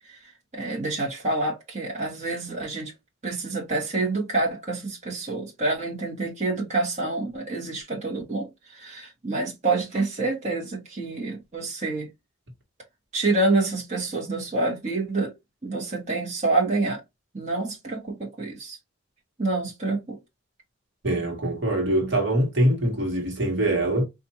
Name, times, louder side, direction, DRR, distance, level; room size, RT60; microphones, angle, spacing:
voice 1, 0.1-2.9 3.2-12.1 13.1-15.3 15.6-17.0 17.3-18.8 19.4-20.2, right 2 dB, 35° right, 1.2 m, -27 dB
voice 2, 21.0-24.0, right 1 dB, 55° right, 1.4 m, -23 dB
4.2 x 2.5 x 2.8 m
head